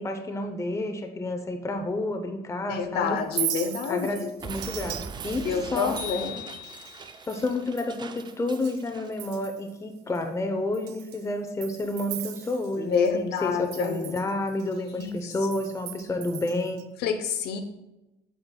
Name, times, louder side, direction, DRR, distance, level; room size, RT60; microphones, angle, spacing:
voice 1, 0.0-3.2 3.9-6.0 7.3-16.8, left 2 dB, 15° left, 5 dB, 0.6 m, -30 dB
voice 2, 2.7-4.3 5.4-6.4 12.8-14.1 15.0-15.3 17.0-17.6, left 6 dB, 75° left, 6 dB, 0.7 m, -28 dB
Chink clink, 3.2-8.8 9.1-9.7 10.1-10.2 10.7-13.1 13.4-16.8, right 12 dB, 85° right, 0.5 m, -38 dB
Explosion, 4.4-9.2, right 5 dB, 25° right, 0.4 m, -41 dB
sound 1, 6.0-7.3, left 6 dB, 60° right, 1.3 m, -39 dB
8.0 x 5.8 x 2.2 m, 0.98 s
cardioid pair, 110°, 17 cm